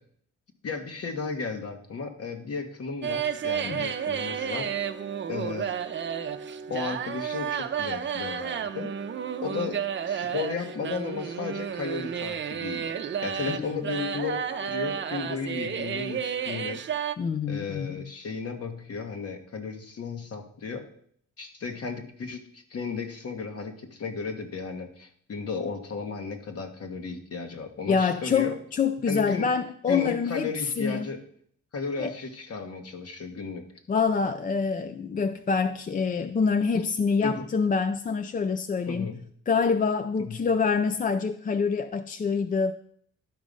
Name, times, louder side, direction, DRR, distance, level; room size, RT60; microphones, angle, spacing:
voice 1, 0.6-4.9 5.3-5.7 6.7-8.9 9.4-12.9 13.2-16.8 17.5-20.8 21.4-28.6 29.1-29.5 29.9-31.2 31.7-33.7 37.2-37.5 38.9-39.2 40.2-40.4, left 4 dB, 50° left, 5 dB, 1.5 m, -34 dB
sound 1, 3.0-17.1, right 8 dB, 40° right, 0.7 m, -32 dB
voice 2, 13.5-13.8 17.2-18.0 27.9-30.5 30.8-31.1 32.0-32.1 33.9-39.1 39.5-42.7, left 5 dB, 30° left, 10 dB, 0.4 m, -26 dB
11.5 x 4.9 x 5.4 m, 0.62 s
cardioid pair, 90°, 30 cm